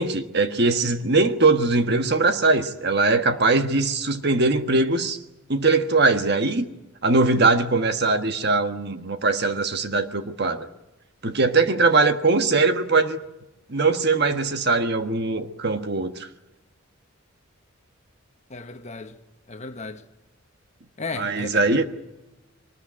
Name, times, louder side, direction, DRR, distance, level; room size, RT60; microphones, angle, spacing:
voice 1, 0.0-5.2 5.5-6.7 7.0-10.7 11.2-13.2 13.7-16.1 21.2-21.8, right 3 dB, 50° right, 1.4 m, -21 dB
voice 2, 18.5-19.2 19.5-20.0 21.0-21.8, left 3 dB, 35° left, 1.3 m, -35 dB
23.0 x 20.0 x 9.9 m
head